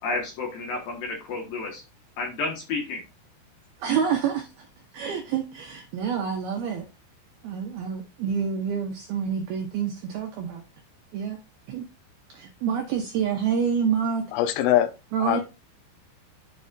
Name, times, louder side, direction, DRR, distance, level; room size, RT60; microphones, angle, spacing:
voice 1, 0.0-1.8 2.2-3.0, left 3 dB, 65° left, 2.4 m, -31 dB
voice 2, 3.8-4.7 4.9-6.8 7.4-10.6 11.1-11.4 11.7-11.8 12.3-14.2 15.1-15.4, right 7 dB, 85° right, 2.2 m, -27 dB
voice 3, 14.3-14.9 15.2-15.4, left 12 dB, 85° left, 3.3 m, -22 dB
10.5 x 5.3 x 2.5 m
omnidirectional pair, 5.8 m